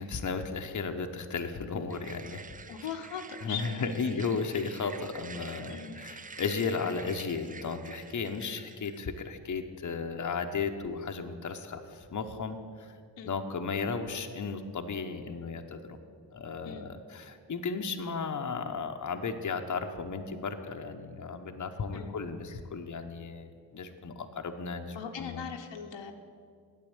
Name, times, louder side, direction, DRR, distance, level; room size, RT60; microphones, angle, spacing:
voice 1, 0.0-2.4 3.4-13.0 13.2-16.0 16.3-25.4, left 5 dB, 40° left, 5 dB, 1.0 m, -35 dB
sound 1, 1.9-9.0, right 5 dB, 20° right, 0.4 m, -48 dB
voice 2, 2.7-4.3 5.7-6.0 13.2-13.4 16.6-16.9 21.9-22.2 24.9-26.1, left 7 dB, 70° left, 4 dB, 1.1 m, -40 dB
9.0 x 7.9 x 7.9 m, 2.2 s
supercardioid pair, 45°, 45 cm